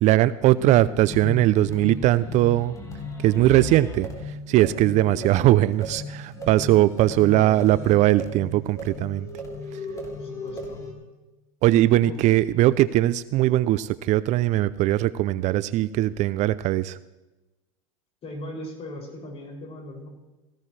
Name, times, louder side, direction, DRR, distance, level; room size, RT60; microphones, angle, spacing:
voice 1, 0.0-2.7 3.2-4.1 4.5-9.3 11.6-17.0, right 15 dB, 45° right, 17 dB, 0.5 m, -20 dB
sound 1, 0.5-10.9, left 1 dB, 20° left, 4.0 m, -36 dB
voice 2, 3.2-3.8 5.0-5.3 7.1-7.6 10.2-10.8 12.0-12.2 18.2-20.1, left 2 dB, 35° left, 0 dB, 6.6 m, -38 dB
18.0 x 16.0 x 3.3 m, 1.1 s
hypercardioid pair, 100°, 18 cm